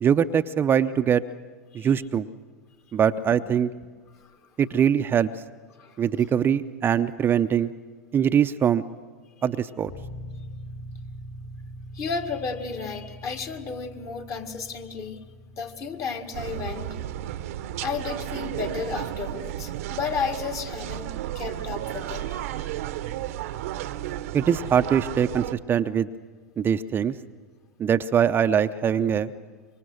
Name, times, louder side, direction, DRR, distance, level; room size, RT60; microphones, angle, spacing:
voice 1, 0.0-1.2 1.7-2.3 2.9-3.7 4.6-5.3 6.0-7.7 8.1-8.8 9.4-9.9 24.3-26.1 26.6-27.1 27.8-29.3, right 8 dB, 25° right, 10 dB, 0.6 m, -22 dB
sound 1, 9.8-24.3, equal, 65° left, 5.2 m, -45 dB
voice 2, 11.9-15.2 15.6-17.0 17.8-22.7 29.1-29.2, left 5 dB, 35° left, 5 dB, 2.1 m, -33 dB
sound 2, 16.3-25.5, right 13 dB, 65° right, 0.8 m, -33 dB
25.5 x 23.5 x 6.4 m, 1.5 s
hypercardioid pair, 95°, 8 cm